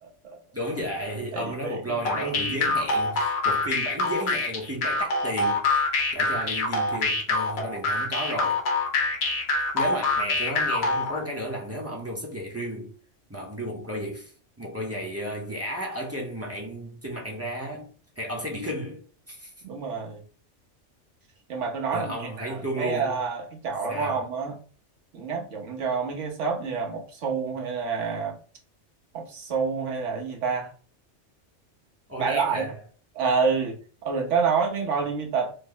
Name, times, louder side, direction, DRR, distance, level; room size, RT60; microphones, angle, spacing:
voice 1, 0.0-0.4 1.3-2.7 19.6-20.2 21.5-24.6 25.1-28.4 29.1-30.7 32.2-32.7 33.1-35.5, right 5 dB, 80° right, 1.2 m, -28 dB
voice 2, 0.5-8.6 9.7-12.9 13.3-14.3 14.6-17.9 18.2-19.5 21.9-23.2 23.9-24.2 32.1-32.7, equal, 15° right, 0.6 m, -33 dB
sound 1, 2.1-11.2, left 3 dB, 60° left, 1.0 m, -25 dB
3.2 x 2.0 x 3.7 m
omnidirectional pair, 1.2 m